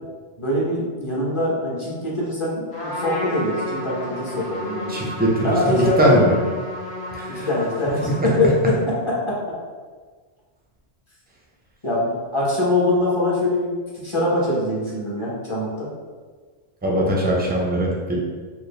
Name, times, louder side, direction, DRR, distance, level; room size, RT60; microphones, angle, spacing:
voice 1, 0.4-5.0 5.4-6.2 7.4-8.7 9.3-9.4 11.8-15.9, left 1 dB, 30° left, -6 dB, 0.9 m, -23 dB
Trumpet, 2.7-8.9, left 1 dB, 65° left, 1.1 m, -32 dB
voice 2, 4.9-6.3 7.1-7.5 8.0-8.3 16.8-18.2, right 1 dB, 10° right, -3 dB, 0.5 m, -20 dB
4.4 x 2.3 x 3.3 m, 1.5 s
omnidirectional pair, 1.2 m